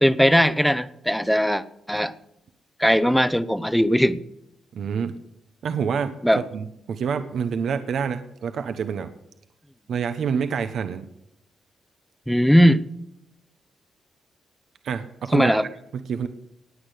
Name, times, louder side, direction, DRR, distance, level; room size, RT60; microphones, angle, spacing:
voice 1, 0.0-2.1 2.8-4.2 6.2-6.4 12.3-12.8 15.3-15.6, equal, ahead, 14 dB, 0.8 m, -19 dB
voice 2, 4.7-5.2 5.6-6.2 6.5-9.1 9.9-11.1 14.8-15.6 15.9-16.3, right 6 dB, 70° right, 9 dB, 0.9 m, -27 dB
19.0 x 8.6 x 6.6 m, 0.84 s
cardioid pair, 110°, 0 cm